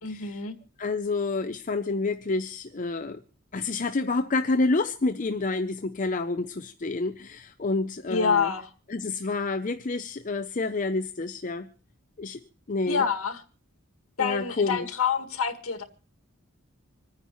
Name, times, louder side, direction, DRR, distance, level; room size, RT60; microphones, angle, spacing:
voice 1, 0.0-0.6 8.1-8.7 12.9-13.4 14.2-15.8, left 6 dB, 80° left, 1.8 m, -27 dB
voice 2, 0.8-3.2 3.5-8.5 8.9-11.7 12.2-12.4 12.7-13.1 14.2-14.9, left 3 dB, 40° left, 0.6 m, -28 dB
27.0 x 9.7 x 3.1 m
head